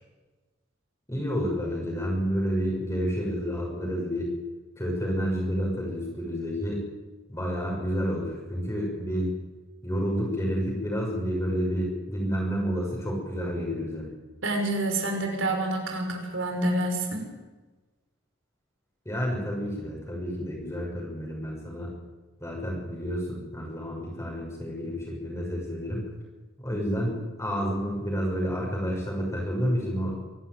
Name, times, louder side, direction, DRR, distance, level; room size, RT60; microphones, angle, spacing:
voice 1, 1.1-4.3 4.8-6.8 7.3-9.3 9.8-14.1 19.0-21.9 22.4-26.0 26.6-30.2, equal, 15° left, -2 dB, 6.3 m, -29 dB
voice 2, 14.4-17.3, right 1 dB, 80° right, 3 dB, 5.8 m, -28 dB
25.5 x 13.0 x 9.5 m, 1.2 s
head